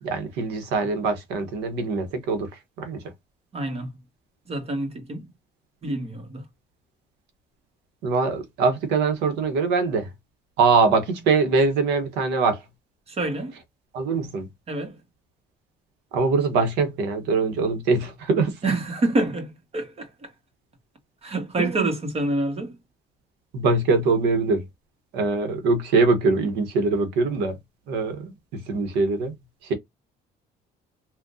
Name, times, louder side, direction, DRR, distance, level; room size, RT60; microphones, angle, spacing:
voice 1, 0.0-2.5 2.8-3.0 8.0-10.1 10.6-12.6 13.9-14.5 16.1-18.6 21.6-21.9 23.5-24.6 25.1-27.6 27.9-29.3 29.6-29.7, right 4 dB, 90° right, 1.1 m, -23 dB
voice 2, 3.5-3.9 4.5-5.3 5.8-6.4 13.1-13.5 14.7-15.0 18.6-20.3 21.2-22.8, right 2 dB, 35° right, 1.4 m, -27 dB
3.6 x 2.4 x 2.6 m
cardioid pair, 110°, 17 cm